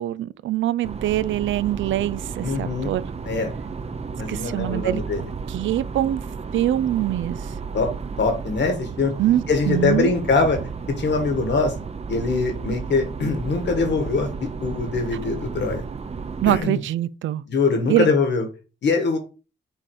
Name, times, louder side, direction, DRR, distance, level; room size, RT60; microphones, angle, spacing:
voice 1, 0.0-3.0 4.3-5.0 5.5-6.2 6.5-7.5 9.2-10.1 16.4-17.4 17.9-18.1, right 13 dB, 90° right, 0.4 m, -23 dB
sound 1, 0.8-16.6, right 5 dB, 35° right, 0.6 m, -33 dB
voice 2, 2.4-2.9 3.2-3.5 4.2-5.3 7.7-7.9 8.2-9.1 9.5-10.6 10.9-11.7 12.1-15.8 16.5-16.8 17.5-18.5 18.8-19.2, left 4 dB, 65° left, 1.9 m, -23 dB
7.3 x 2.9 x 4.9 m
cardioid pair, 85°, 19 cm